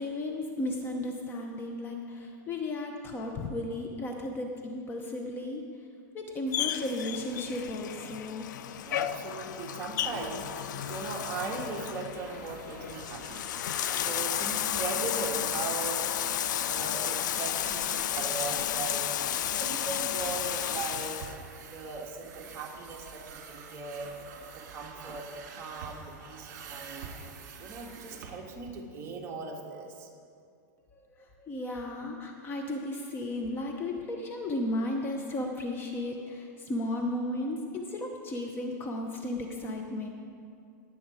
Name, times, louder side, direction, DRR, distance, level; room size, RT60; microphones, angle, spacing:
voice 1, 0.0-5.6 6.1-8.5 31.2-40.1, left 1 dB, 20° left, 2 dB, 0.9 m, -34 dB
Bathtub (filling or washing), 6.5-21.3, left 10 dB, 75° left, 0.5 m, -32 dB
voice 2, 8.8-13.4 13.9-16.1 16.6-21.3 21.7-24.1 24.5-27.2 27.6-30.1, right 4 dB, 25° right, 0 dB, 1.7 m, -39 dB
sound 1, 10.0-28.7, right 5 dB, 55° right, 2.2 m, -48 dB
18.5 x 7.8 x 4.9 m, 2.4 s
supercardioid pair, 150°, 10 cm